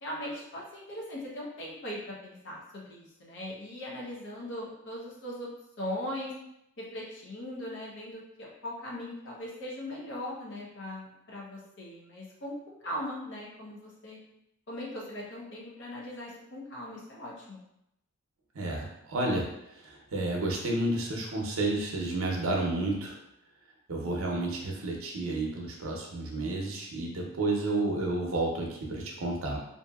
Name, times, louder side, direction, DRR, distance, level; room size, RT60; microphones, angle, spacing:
voice 1, 0.0-5.5 5.8-6.3 6.8-14.2 14.7-17.6, left 1 dB, 55° left, -4 dB, 0.7 m, -39 dB
voice 2, 18.5-19.5 19.7-23.2 23.9-29.6, right 2 dB, 70° right, -1 dB, 0.6 m, -31 dB
2.7 x 2.6 x 2.3 m, 0.81 s
head